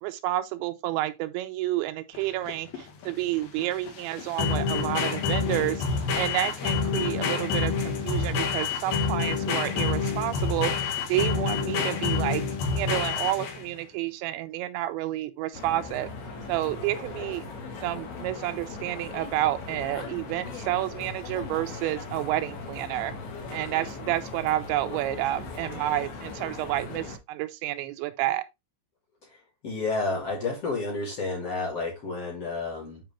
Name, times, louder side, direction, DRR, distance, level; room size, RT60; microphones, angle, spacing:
voice 1, 0.0-5.8 6.1-12.4 12.7-16.1 16.5-17.4 17.8-23.1 23.5-28.4, right 15 dB, 90° right, 3.1 m, -30 dB
sound 1, 2.1-13.8, left 5 dB, 65° left, 3.0 m, -28 dB
sound 2, 15.5-27.2, left 4 dB, 85° left, 3.9 m, -39 dB
voice 2, 29.6-33.0, left 3 dB, 40° left, 3.3 m, -30 dB
9.3 x 4.9 x 3.3 m
omnidirectional pair, 5.1 m